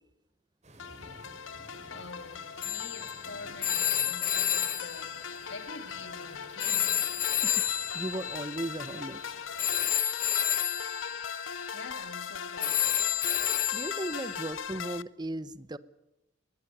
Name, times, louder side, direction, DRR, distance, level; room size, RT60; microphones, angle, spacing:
sound 1, 0.6-10.0, right 2 dB, 35° right, 4.5 m, -54 dB
sound 2, 0.8-15.0, left 7 dB, 90° left, 0.7 m, -41 dB
voice 1, 1.9-7.1 10.9-13.2, left 3 dB, 70° left, 2.1 m, -47 dB
Telephone, 2.6-6.3 6.6-14.5, left 10 dB, 50° left, 1.6 m, -31 dB
voice 2, 7.9-9.2 13.7-15.8, right 1 dB, 20° right, 0.9 m, -36 dB
21.5 x 20.0 x 6.8 m
head